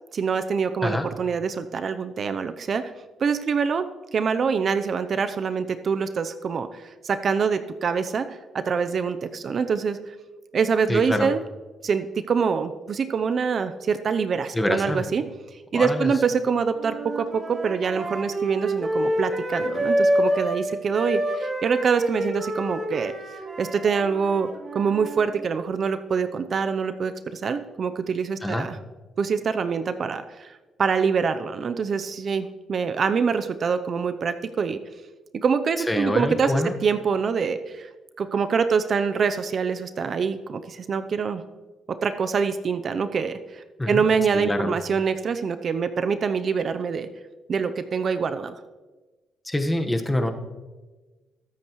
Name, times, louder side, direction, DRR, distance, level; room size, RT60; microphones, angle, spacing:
voice 1, 0.1-2.9 3.2-3.8 4.1-10.2 10.5-11.4 11.8-15.2 15.7-23.1 23.6-24.5 24.7-28.8 29.2-34.8 35.3-37.9 38.2-41.4 41.9-47.1 47.5-48.5, right 5 dB, 50° right, 10 dB, 0.6 m, -25 dB
voice 2, 10.9-11.3 14.5-15.1 15.7-16.1 28.4-28.7 35.8-36.7 43.8-44.0 44.3-44.8 49.4-50.3, left 1 dB, 10° left, 5 dB, 1.3 m, -25 dB
sound 1, 16.8-20.6 20.9-25.3, right 1 dB, 25° right, 2.4 m, -27 dB
21.5 x 8.6 x 3.1 m, 1.3 s
cardioid pair, 90°, 0 cm